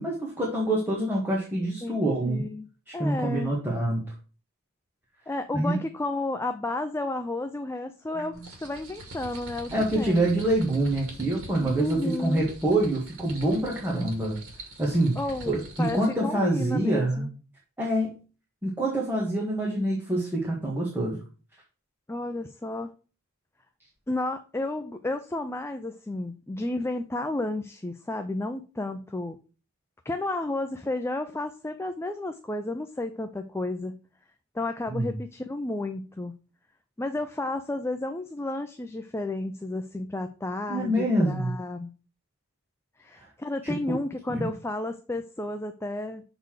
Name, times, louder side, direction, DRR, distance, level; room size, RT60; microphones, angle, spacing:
voice 1, 0.0-2.4 2.9-4.0 5.5-5.8 8.3-8.4 9.7-14.4 14.8-15.2 15.5-17.3 17.8-18.1 18.6-21.2 34.9-35.1 40.7-41.5 43.2-43.3 43.6-43.8 44.3-44.5, right 1 dB, 10° right, -5 dB, 1.7 m, -26 dB
voice 2, 1.8-2.7 2.9-3.5 5.3-8.3 8.6-10.3 11.6-12.5 15.2-17.3 22.1-22.9 24.1-29.4 30.0-33.9 34.5-36.3 37.0-41.9 43.0-46.2, left 2 dB, 10° left, 7 dB, 0.4 m, -32 dB
sound 1, 8.3-16.2, right 1 dB, 65° right, 2.3 m, -44 dB
6.8 x 4.1 x 6.5 m, 0.36 s
head